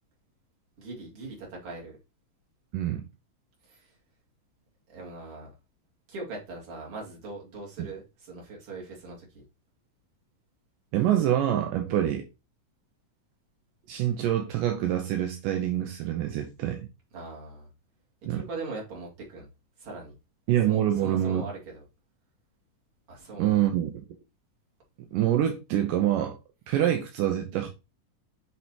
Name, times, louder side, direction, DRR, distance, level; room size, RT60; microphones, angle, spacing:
voice 1, 0.8-2.0 3.7-3.8 4.9-5.5 6.1-9.4 11.9-12.0 17.1-17.7 18.3-19.5 19.8-20.1 20.7-21.8 23.1-23.6, right 3 dB, 40° right, 2.8 m, -40 dB
voice 2, 10.9-12.3 13.9-16.9 18.3-18.4 20.5-21.5 23.4-24.1 25.1-26.4 26.7-27.7, right 11 dB, 80° right, 2.2 m, -26 dB
7.8 x 4.3 x 2.8 m
omnidirectional pair, 4.0 m